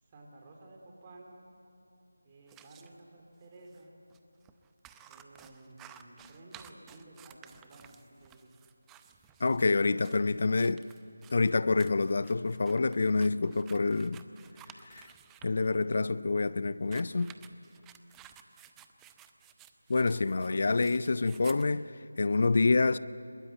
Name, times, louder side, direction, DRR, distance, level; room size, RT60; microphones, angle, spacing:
voice 1, 0.0-1.3 2.2-3.9 5.1-8.6, right 2 dB, 25° right, 3.8 m, -54 dB
sound 1, 2.5-2.9 3.7-3.8 4.1-4.2 4.4-15.5 16.7-21.7, right 10 dB, 10° right, 0.7 m, -55 dB
voice 2, 9.4-10.9 11.3-14.3 14.9-15.1 15.4-17.3 19.9-23.0, left 3 dB, 50° left, 0.6 m, -27 dB
23.0 x 21.0 x 9.1 m
figure-of-eight pair, 165°, 0 cm